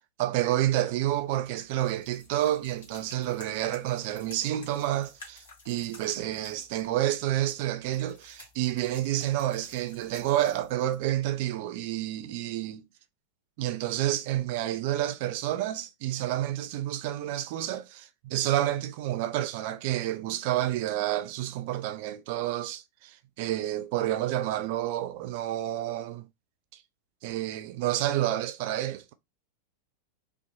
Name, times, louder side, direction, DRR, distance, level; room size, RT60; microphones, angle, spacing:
voice 1, 0.2-12.9 13.6-26.3 26.7-26.8 27.2-29.1, right 13 dB, 50° right, 0.3 m, -29 dB
sound 1, 1.0-11.3, left 3 dB, 65° left, 1.1 m, -53 dB
2.6 x 2.0 x 2.5 m
figure-of-eight pair, 90°, 0 cm